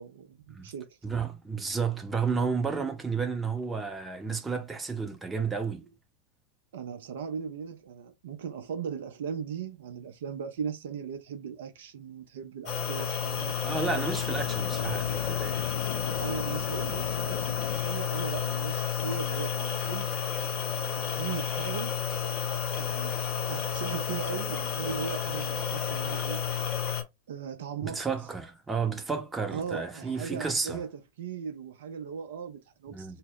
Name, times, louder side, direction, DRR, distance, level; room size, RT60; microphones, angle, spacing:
voice 1, 0.0-1.0 6.7-14.1 16.1-20.1 21.0-22.0 22.8-26.4 27.3-28.1 29.5-33.2, right 7 dB, 70° right, 0.5 m, -38 dB
voice 2, 1.0-5.9 13.6-15.7 27.8-30.8 32.9-33.2, right 5 dB, 15° right, 0.7 m, -32 dB
sound 1, 12.7-27.0, left 9 dB, 45° left, 0.7 m, -31 dB
sound 2, 13.3-17.8, left 10 dB, 65° left, 0.3 m, -40 dB
2.1 x 2.0 x 3.7 m
hypercardioid pair, 90°, 0 cm